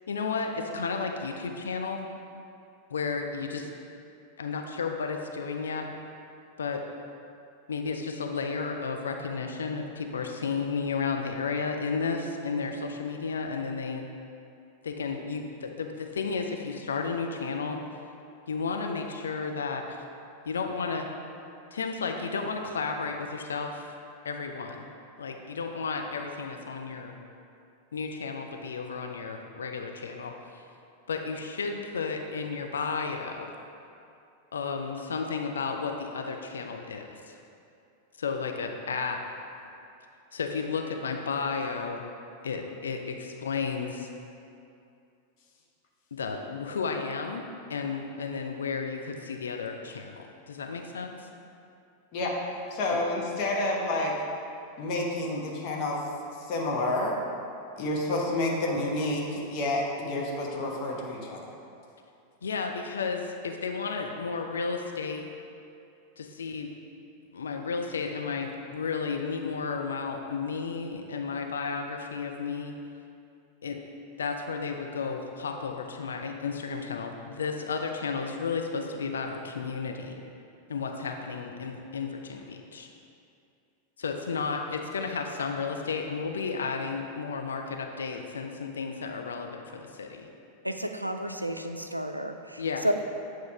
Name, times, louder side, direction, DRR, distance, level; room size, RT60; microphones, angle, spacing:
voice 1, 0.1-2.0 2.9-3.7 4.4-5.9 6.6-6.8 7.7-14.0 14.8-17.8 18.5-20.0 20.5-21.1 21.7-23.9 24.2-24.9 25.2-27.1 27.9-30.6 31.1-33.5 34.5-37.4 38.2-39.2 40.3-42.0 42.4-44.1 46.1-47.4 47.7-51.3 62.4-65.3 66.2-66.7 67.3-72.7 73.6-73.8 74.2-80.1 80.7-82.9 84.0-90.3 92.6-92.9, left 5 dB, 70° left, 4 dB, 0.4 m, -33 dB
voice 2, 52.7-54.1 54.8-56.0 56.4-57.2 57.8-61.5, left 2 dB, 45° left, -1 dB, 1.0 m, -29 dB
voice 3, 90.6-92.9, equal, 90° right, 6 dB, 0.3 m, -31 dB
8.2 x 3.1 x 4.7 m, 2.6 s
figure-of-eight pair, 90°, 0 cm